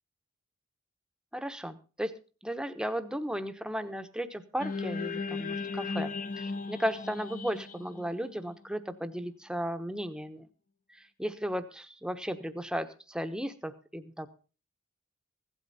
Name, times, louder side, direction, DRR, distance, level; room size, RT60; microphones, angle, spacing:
voice 1, 1.3-2.1 2.4-10.5 10.9-14.3, equal, 5° right, 9 dB, 1.0 m, -35 dB
sound 1, 4.6-8.9, left 4 dB, 40° left, 1.0 m, -36 dB
16.0 x 12.0 x 4.2 m, 0.35 s
head